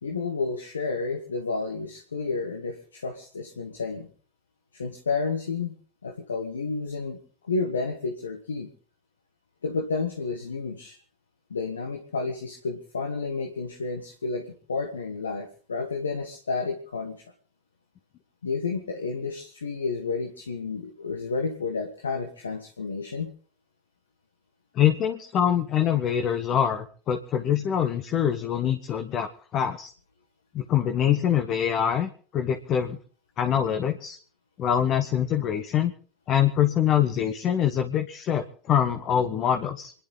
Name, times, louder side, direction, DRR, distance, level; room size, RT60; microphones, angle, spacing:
voice 1, 0.0-4.1 4.7-5.7 6.0-8.7 9.6-11.0 11.5-17.2 18.4-23.3, left 4 dB, 85° left, 4 dB, 1.5 m, -31 dB
voice 2, 24.8-29.9 30.5-33.0 33.4-34.2 34.6-35.9 36.3-39.9, left 9 dB, 45° left, 8 dB, 1.3 m, -24 dB
27.5 x 11.0 x 4.0 m, 0.43 s
figure-of-eight pair, 75°, 0 cm